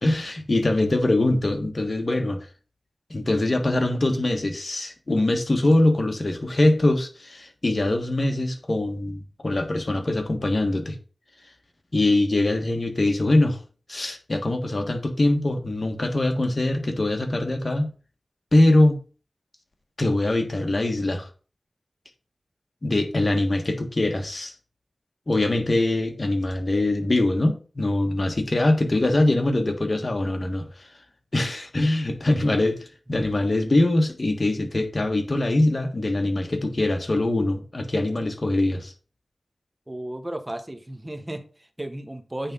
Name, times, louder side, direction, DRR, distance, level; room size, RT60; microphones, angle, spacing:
voice 1, 0.0-2.5 3.1-11.0 11.9-13.6 13.9-17.9 18.5-19.0 20.0-21.3 22.8-24.5 25.3-30.7 31.3-38.9, left 2 dB, 50° left, 1.5 m, -23 dB
voice 2, 39.9-42.5, right 1 dB, 20° right, 1.1 m, -34 dB
8.7 x 3.7 x 5.4 m
wide cardioid pair, 55°, 0 cm